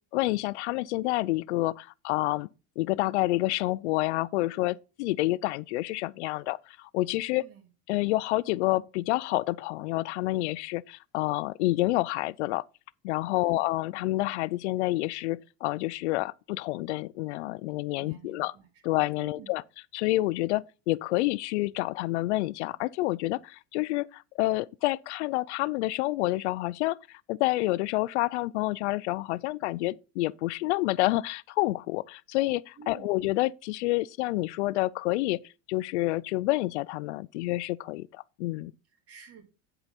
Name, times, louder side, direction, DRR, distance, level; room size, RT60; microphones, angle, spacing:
voice 1, 0.1-2.5 2.8-7.4 7.9-12.6 13.0-18.5 18.8-19.6 19.9-35.4 35.7-38.7, left 19 dB, 90° left, 0.5 m, -28 dB
voice 2, 18.0-18.8 19.2-19.6 32.8-33.1 38.9-39.4, right 6 dB, 45° right, 3.0 m, -49 dB
10.5 x 5.0 x 4.1 m
supercardioid pair, 120°, 33 cm